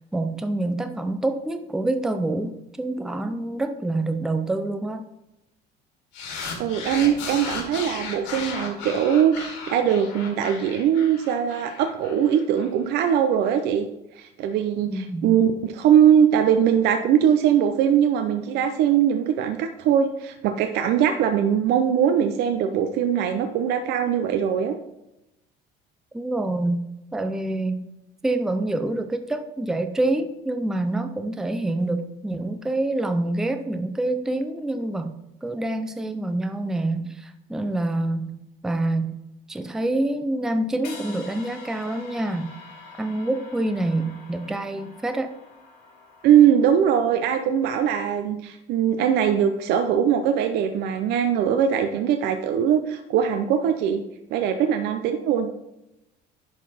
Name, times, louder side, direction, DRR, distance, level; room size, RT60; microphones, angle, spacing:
voice 1, 0.1-5.0 14.9-15.4 26.1-26.8 27.1-27.9 28.2-38.3 38.6-39.2 39.5-42.6 43.0-45.3, right 2 dB, 5° right, 8 dB, 0.4 m, -26 dB
sound 1, 6.1-12.7, left 5 dB, 85° left, 2.2 m, -35 dB
voice 2, 6.6-13.9 14.2-24.7 46.2-54.0 54.3-55.5, right 9 dB, 65° right, 6 dB, 0.6 m, -21 dB
sound 2, 40.8-47.0, left 4 dB, 60° left, 2.2 m, -45 dB
10.5 x 4.0 x 4.2 m, 0.90 s
cardioid pair, 160°, 18 cm